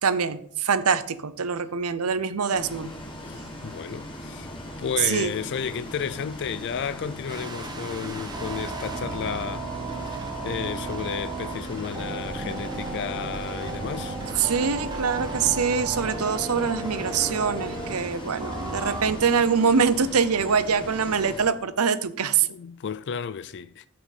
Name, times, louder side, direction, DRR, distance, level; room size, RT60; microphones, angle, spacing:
voice 1, 0.0-2.9 5.1-5.3 14.4-22.5, right 6 dB, 85° right, 0.7 m, -24 dB
Bus, 2.5-21.5, left 1 dB, 25° left, 1.7 m, -39 dB
voice 2, 3.2-4.5 4.8-9.7 10.1-14.2 22.5-23.9, left 7 dB, 55° left, 0.4 m, -32 dB
sound 1, 7.3-19.1, right 3 dB, 20° right, 1.3 m, -34 dB
14.0 x 5.8 x 4.2 m
head